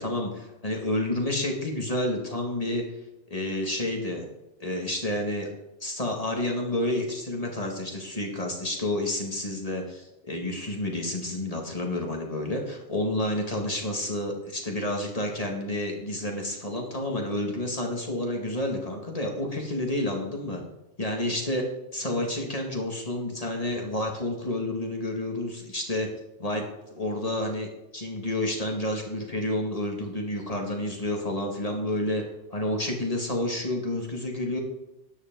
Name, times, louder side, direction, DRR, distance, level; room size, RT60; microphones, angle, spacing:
voice 1, 0.0-2.8 3.3-4.3 4.6-5.5 5.8-20.6 21.0-21.6 21.9-26.1 26.4-26.6 26.9-27.7 27.9-32.2 32.5-34.6, left 1 dB, 30° left, 1 dB, 2.3 m, -29 dB
12.5 x 10.0 x 3.9 m, 0.94 s
omnidirectional pair, 1.2 m